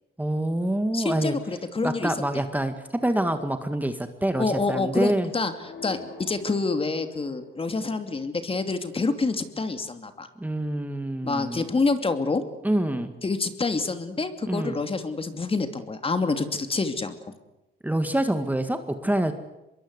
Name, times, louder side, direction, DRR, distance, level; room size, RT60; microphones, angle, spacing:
voice 1, 0.2-1.4 1.8-5.3 10.4-11.7 12.6-13.1 14.5-14.8 17.8-19.3, right 1 dB, 10° right, 8 dB, 1.9 m, -26 dB
voice 2, 0.9-2.1 4.4-5.5 5.8-10.3 11.2-12.4 13.2-17.3, left 3 dB, 30° left, 8 dB, 2.8 m, -27 dB
sound 1, 5.6-7.7, left 4 dB, 60° left, 6.2 m, -45 dB
25.0 x 22.0 x 8.2 m, 0.95 s
cardioid pair, 90°, 20 cm